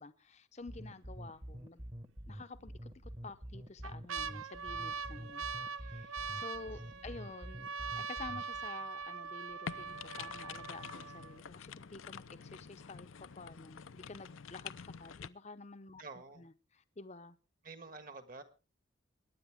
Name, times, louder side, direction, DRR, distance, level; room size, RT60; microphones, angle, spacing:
voice 1, 0.0-1.8 2.3-5.4 5.8-7.7 8.0-16.0 16.4-16.5 17.0-17.4, left 3 dB, 35° left, 0.7 m, -50 dB
sound 1, 0.6-1.1 1.6-1.7 2.6-3.1 3.6-11.5 12.2-12.3 12.5-13.0 13.5-13.6, right 5 dB, 90° right, 0.6 m, -42 dB
sound 2, 0.7-8.7, equal, 25° right, 1.1 m, -47 dB
voice 2, 6.7-7.2 16.0-16.5 17.6-18.4, right 3 dB, 45° right, 1.5 m, -50 dB
sound 3, 9.7-15.3, left 7 dB, 80° left, 0.6 m, -47 dB
22.5 x 9.9 x 3.5 m
head